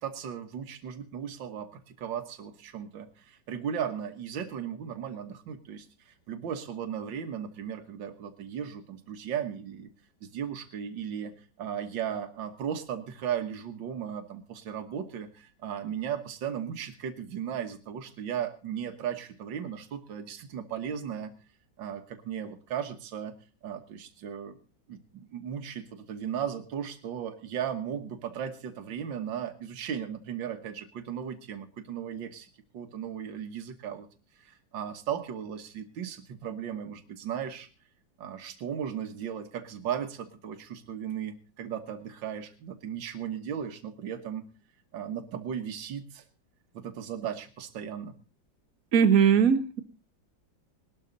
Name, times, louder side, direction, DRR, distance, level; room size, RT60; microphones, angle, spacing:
voice 1, 0.0-1.7 2.0-9.9 10.2-21.3 21.8-23.4 23.6-24.6 24.9-32.5 32.7-34.1 34.4-37.7 38.2-44.5 44.9-46.2 46.7-48.1, right 8 dB, 80° right, 8 dB, 2.0 m, -36 dB
voice 2, 48.9-49.8, right 7 dB, 50° right, 9 dB, 1.6 m, -20 dB
19.5 x 12.5 x 4.0 m, 0.34 s
omnidirectional pair, 2.0 m